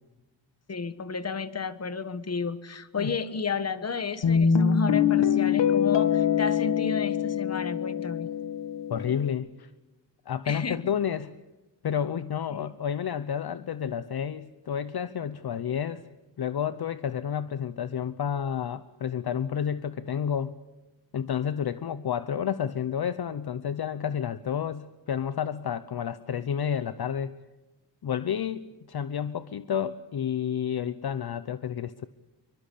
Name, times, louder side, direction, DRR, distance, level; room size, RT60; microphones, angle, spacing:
voice 1, 0.7-8.3 10.4-10.8 12.5-12.6, left 5 dB, 35° left, 13 dB, 1.4 m, -32 dB
Guitar, 4.2-9.3, left 7 dB, 75° left, 2.2 m, -24 dB
voice 2, 8.9-9.7 10.3-11.3 11.8-16.0 16.4-20.6 21.1-27.4 28.0-32.0, left 8 dB, 55° left, 14 dB, 0.8 m, -30 dB
27.5 x 23.5 x 8.5 m, 1.1 s
wide cardioid pair, 170°, 44 cm